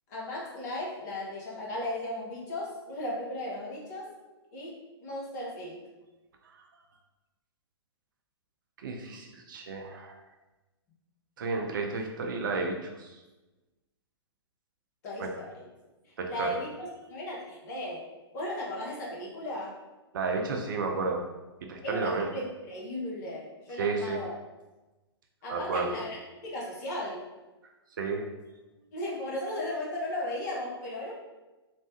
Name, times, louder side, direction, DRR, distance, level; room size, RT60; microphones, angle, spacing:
voice 1, 0.1-4.1 4.5-5.8 15.0-15.7 16.0-18.0 18.3-19.8 21.8-24.4 25.4-26.2 26.4-27.2 28.9-31.1, left 1 dB, 40° left, -4 dB, 0.8 m, -36 dB
voice 2, 8.8-10.2 11.4-13.2 15.2-15.3 16.2-16.6 20.1-21.2 21.7-22.3 23.8-24.2 25.5-25.9 28.0-28.2, right 4 dB, 50° right, 2 dB, 0.4 m, -32 dB
3.1 x 2.1 x 2.8 m, 1.1 s
figure-of-eight pair, 115°, 14 cm